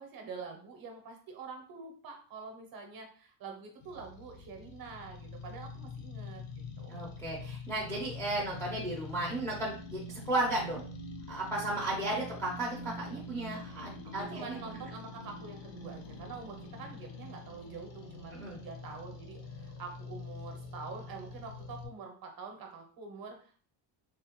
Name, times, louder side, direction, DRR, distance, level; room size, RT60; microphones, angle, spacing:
voice 1, 0.0-6.4 6.8-7.1 12.3-12.4 14.2-23.6, right 4 dB, 45° right, 3 dB, 0.6 m, -46 dB
sound 1, 3.8-21.9, left 2 dB, 60° left, 0.6 m, -45 dB
voice 2, 6.9-10.0 10.3-10.8 11.3-14.6 18.3-18.6, right 1 dB, 5° left, -5 dB, 0.4 m, -34 dB
3.4 x 2.1 x 2.9 m, 0.43 s
cardioid pair, 175°, 50 cm